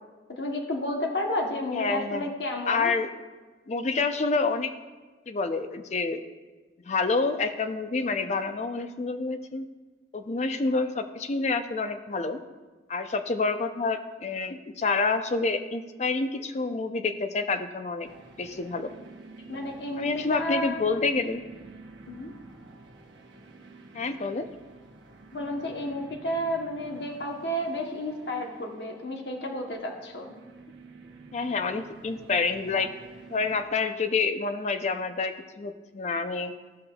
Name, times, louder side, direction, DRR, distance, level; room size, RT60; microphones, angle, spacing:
voice 1, 0.3-2.9 19.5-20.8 22.1-22.3 25.3-30.4, left 1 dB, 70° left, 2 dB, 0.9 m, -31 dB
voice 2, 1.7-2.3 2.7-3.1 3.7-4.7 5.3-6.2 6.8-9.7 10.1-12.4 12.9-18.1 18.4-18.9 20.0-21.4 23.9-24.5 31.3-32.9 33.3-36.6, left 4 dB, 40° left, 9 dB, 0.4 m, -28 dB
sound 1, 18.0-33.6, right 3 dB, 85° right, 0.9 m, -49 dB
14.0 x 5.6 x 2.3 m, 1.3 s
head